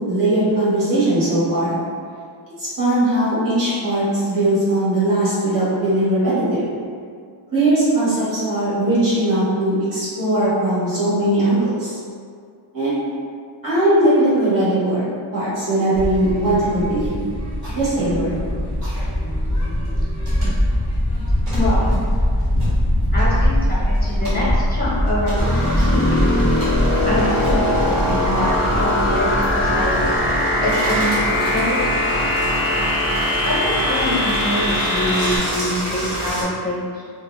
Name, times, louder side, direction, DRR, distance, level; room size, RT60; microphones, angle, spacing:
voice 1, 0.1-1.8 2.6-6.7 7.5-12.0 12.7-13.1 13.6-15.0 15.3-17.2 17.7-18.4, right 1 dB, 40° right, -12 dB, 1.4 m, -19 dB
sound 1, 16.0-30.3, equal, 25° right, 1.3 m, -22 dB
sound 2, 18.7-36.4, equal, 75° right, 1.2 m, -28 dB
voice 2, 21.5-21.9 23.1-26.4 27.0-27.6 27.9-31.9 33.4-36.7, left 1 dB, 20° left, -8 dB, 0.9 m, -25 dB
sound 3, 25.4-35.4, left 1 dB, 5° right, 0.7 m, -21 dB
2.8 x 2.8 x 2.3 m, 2.2 s
wide cardioid pair, 95°, 49 cm